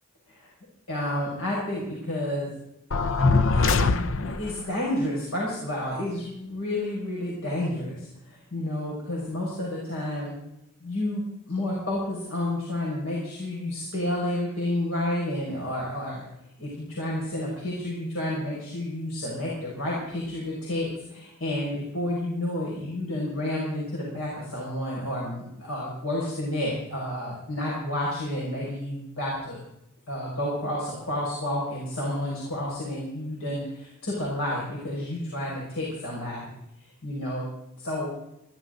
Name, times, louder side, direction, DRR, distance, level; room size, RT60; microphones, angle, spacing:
voice 1, 0.9-2.5 3.5-10.3 10.8-16.2 16.6-29.6 30.1-36.5 37.0-37.5 37.8-38.1, left 1 dB, 80° left, -5 dB, 6.1 m, -30 dB
sound 1, 2.9-4.6, left 3 dB, 65° left, 0.8 m, -22 dB
21.0 x 16.0 x 4.0 m, 0.84 s
head